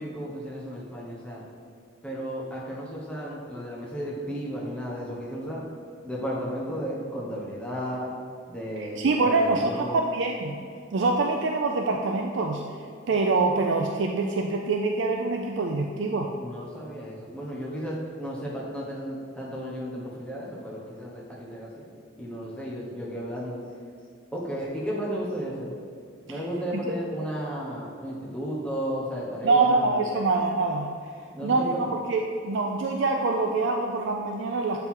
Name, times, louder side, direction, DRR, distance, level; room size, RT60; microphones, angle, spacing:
voice 1, 0.0-1.4 2.0-5.6 6.0-8.1 8.5-10.0 16.4-21.8 22.2-23.6 24.3-25.7 26.2-30.2 31.3-31.9, equal, 5° left, -5 dB, 1.1 m, -34 dB
voice 2, 8.8-10.6 10.9-12.6 13.1-16.3 26.3-26.4 26.7-27.0 29.4-30.9 31.4-34.9, right 3 dB, 60° right, 1 dB, 0.4 m, -25 dB
7.9 x 4.5 x 3.8 m, 2.2 s
head